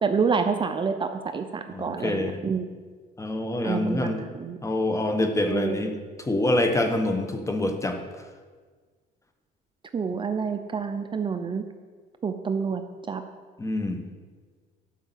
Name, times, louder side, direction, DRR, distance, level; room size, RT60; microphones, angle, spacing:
voice 1, 0.0-2.7 3.6-4.6 5.5-5.8 9.9-11.6 12.2-12.8 13.1-13.2, right 5 dB, 30° right, 7 dB, 0.7 m, -28 dB
voice 2, 1.7-2.4 3.2-4.2 4.6-8.0 13.6-14.0, left 1 dB, 15° left, 6 dB, 1.3 m, -26 dB
12.0 x 5.6 x 7.5 m, 1.5 s
cardioid pair, 110°, 17 cm